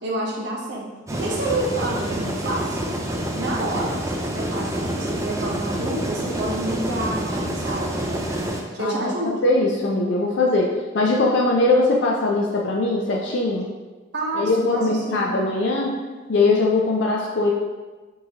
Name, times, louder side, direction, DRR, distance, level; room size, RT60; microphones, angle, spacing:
voice 1, 0.0-2.8 3.3-8.2 8.7-9.4 14.1-15.3, right 2 dB, 55° right, -3 dB, 0.9 m, -29 dB
sound 1, 1.1-8.6, right 1 dB, 15° right, 0.4 m, -27 dB
voice 2, 8.8-10.7 10.9-13.6 14.3-15.9 16.3-17.5, left 2 dB, 60° left, -2 dB, 0.4 m, -21 dB
6.1 x 2.7 x 2.9 m, 1.3 s
head